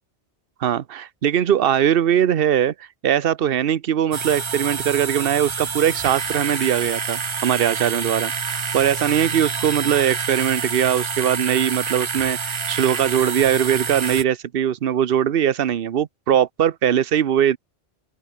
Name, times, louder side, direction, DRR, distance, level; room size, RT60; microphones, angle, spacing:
voice 1, 0.6-2.7 3.0-17.6, right 9 dB, 55° right, 1.0 m, -20 dB
sound 1, 4.1-14.2, right 5 dB, 30° right, 0.6 m, -27 dB
open air
omnidirectional pair, 1.2 m